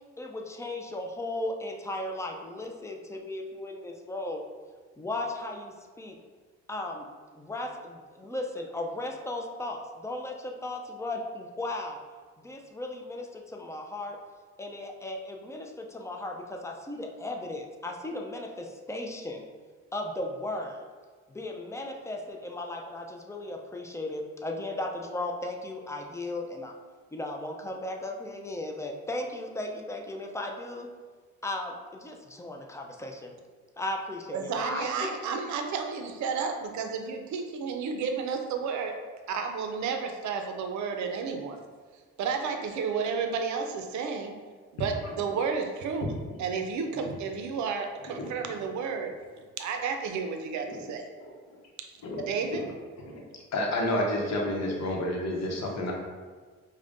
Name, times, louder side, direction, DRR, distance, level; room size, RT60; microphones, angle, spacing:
voice 1, 0.2-4.4 5.0-6.2 6.7-7.0 7.3-12.0 12.4-14.2 14.6-19.5 19.9-20.9 21.3-26.7 27.1-30.9 31.4-33.3 33.8-35.1, left 1 dB, 10° left, 1 dB, 0.4 m, -36 dB
voice 2, 34.3-38.9 39.3-41.6 42.2-44.4 44.7-46.1 46.4-49.1 49.6-51.0 52.2-52.6, right 5 dB, 70° right, 5 dB, 0.5 m, -31 dB
voice 3, 52.0-52.7 53.5-55.9, left 1 dB, 60° left, 0 dB, 0.8 m, -30 dB
4.9 x 2.2 x 2.5 m, 1.5 s
cardioid pair, 90°, 30 cm